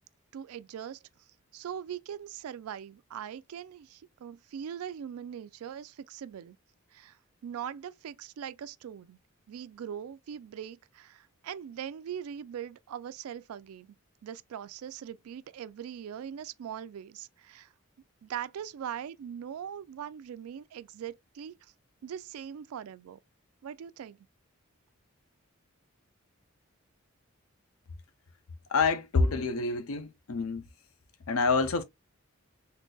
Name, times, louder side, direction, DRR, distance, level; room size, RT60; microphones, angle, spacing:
voice 1, 0.3-1.0 1.5-6.6 6.9-7.2 7.4-9.2 9.5-14.0 14.2-17.7 18.2-21.7 22.0-23.2 23.6-24.3, right 9 dB, 90° right, 0.3 m, -41 dB
voice 2, 28.7-30.7 31.3-31.8, left 4 dB, 80° left, 0.6 m, -27 dB
3.8 x 2.7 x 2.3 m
head